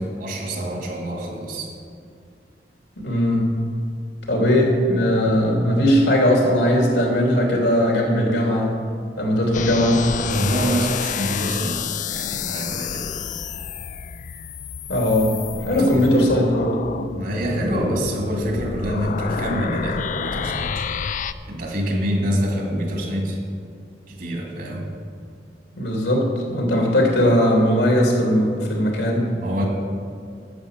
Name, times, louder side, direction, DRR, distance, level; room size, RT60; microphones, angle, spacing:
voice 1, 0.0-1.7 10.3-13.1 15.3-16.2 17.1-20.9 21.5-23.4 24.1-24.9 29.3-29.7, equal, 55° right, 1 dB, 2.2 m, -26 dB
voice 2, 3.0-3.5 4.3-8.7 9.2-10.0 14.9-15.3 15.6-16.7 25.7-29.3, equal, 85° left, -1 dB, 2.9 m, -19 dB
sound 1, 9.5-21.3, left 6 dB, 45° left, 0.4 m, -29 dB
11.0 x 7.8 x 6.7 m, 2.4 s
head